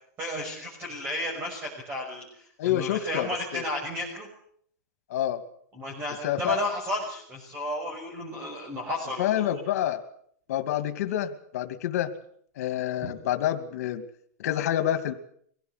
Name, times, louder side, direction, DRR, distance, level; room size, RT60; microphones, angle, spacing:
voice 1, 0.2-4.3 5.7-9.5 13.0-13.1, left 1 dB, 20° right, 0 dB, 6.0 m, -33 dB
voice 2, 2.6-3.6 5.1-5.4 6.2-6.6 9.2-10.0 10.5-12.1 12.6-14.0 14.4-15.1, left 11 dB, 60° left, 9 dB, 2.4 m, -28 dB
24.0 x 16.5 x 8.2 m, 0.63 s
supercardioid pair, 160°, 9 cm